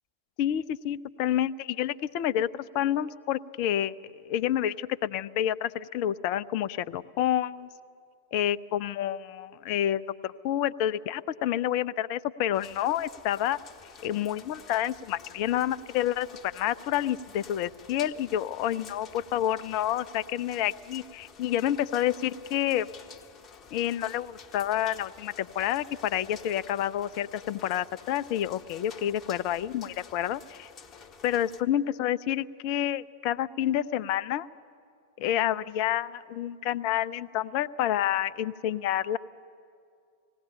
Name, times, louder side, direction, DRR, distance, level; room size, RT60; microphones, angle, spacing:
voice 1, 0.4-7.7 8.3-13.6 14.0-22.9 23.7-30.4 31.2-34.5 35.2-39.2, left 11 dB, 45° left, 18 dB, 0.5 m, -29 dB
sound 1, 12.5-31.6, left 6 dB, 25° left, 1.2 m, -50 dB
19.5 x 17.0 x 8.8 m, 2.3 s
figure-of-eight pair, 90°, 0 cm